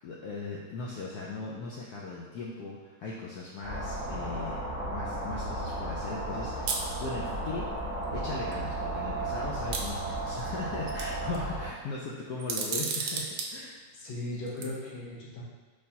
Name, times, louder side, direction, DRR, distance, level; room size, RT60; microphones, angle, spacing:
voice 1, 0.0-4.6 4.9-7.7 8.1-13.8, left 3 dB, 90° left, -4 dB, 0.8 m, -38 dB
sound 1, 3.6-11.7, right 2 dB, 60° left, 2.3 m, -34 dB
sound 2, 6.7-6.9 8.0-8.1 8.5-8.6 9.7-10.5 10.9-11.4 12.4-13.5 14.4-14.6, right 5 dB, 75° right, 1.0 m, -32 dB
voice 2, 13.9-15.4, left 1 dB, 75° left, -5 dB, 1.7 m, -37 dB
5.0 x 3.3 x 2.8 m, 1.3 s
omnidirectional pair, 2.3 m